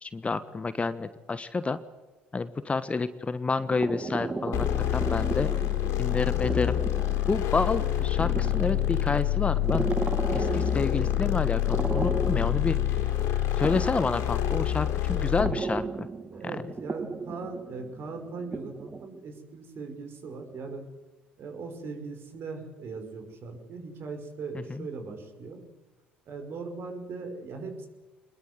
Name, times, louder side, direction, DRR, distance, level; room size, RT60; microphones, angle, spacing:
voice 1, 0.0-1.8 2.3-4.7 4.9-5.5 6.0-6.8 7.3-9.9 10.3-13.0 13.6-16.1 24.7-24.9, left 4 dB, 25° left, 14 dB, 1.3 m, -29 dB
sound 1, 3.6-19.1, right 3 dB, 20° right, 1.8 m, -36 dB
sound 2, 4.5-15.6, left 13 dB, 65° left, 4.1 m, -27 dB
voice 2, 15.1-15.5 16.3-20.8 21.4-25.6 26.3-27.9, right 4 dB, 50° right, 5 dB, 5.6 m, -39 dB
24.5 x 21.5 x 8.1 m, 1.2 s
hypercardioid pair, 55°, 5 cm